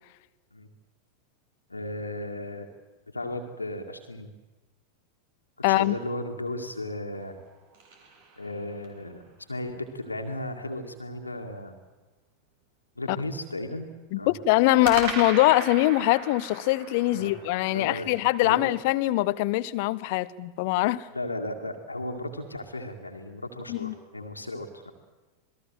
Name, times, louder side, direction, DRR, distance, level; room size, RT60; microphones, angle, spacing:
voice 1, 1.7-2.7 3.1-4.3 5.7-7.4 8.4-9.2 9.5-11.7 13.0-13.9 14.2-14.3 17.1-17.3 17.7-18.1 18.4-18.7 21.1-24.9, left 1 dB, 80° left, 4 dB, 2.1 m, -35 dB
voice 2, 5.6-5.9 13.1-13.2 14.1-21.1 23.7-23.9, left 18 dB, 50° left, 18 dB, 0.9 m, -23 dB
sound 1, 7.1-9.0 14.8-19.1, right 3 dB, 50° right, 5.3 m, -39 dB
27.5 x 20.0 x 7.6 m, 1.2 s
figure-of-eight pair, 90°, 0 cm